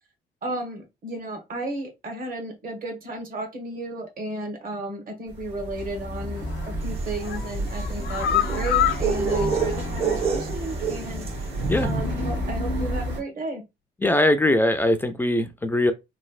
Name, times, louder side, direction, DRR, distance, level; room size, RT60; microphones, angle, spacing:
voice 1, 0.4-11.3 11.8-13.6, right 1 dB, 50° right, 1.2 m, -34 dB
sound 1, 5.3-13.2, right 1 dB, 75° right, 1.4 m, -30 dB
sound 2, 6.4-6.7 7.1-10.5 10.8-10.9 11.3-11.4, left 11 dB, 75° left, 0.6 m, -28 dB
sound 3, 6.9-11.5, right 6 dB, 30° right, 0.6 m, -28 dB
voice 2, 14.0-15.9, left 1 dB, 10° left, 0.3 m, -21 dB
3.1 x 2.7 x 2.4 m
cardioid pair, 145°, 18 cm